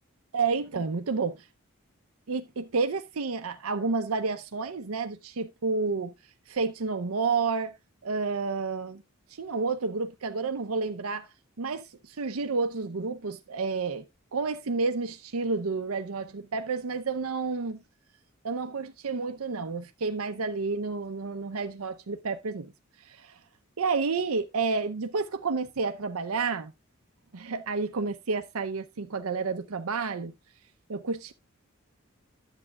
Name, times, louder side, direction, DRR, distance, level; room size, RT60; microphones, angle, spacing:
voice 1, 0.3-1.3 2.3-6.1 6.5-7.7 8.0-9.0 9.3-11.3 11.6-14.1 14.3-17.8 18.4-22.7 23.0-23.4 23.8-26.7 27.3-30.3 30.9-31.3, right 4 dB, 85° right, 0.7 m, -30 dB
11.0 x 8.2 x 2.3 m
head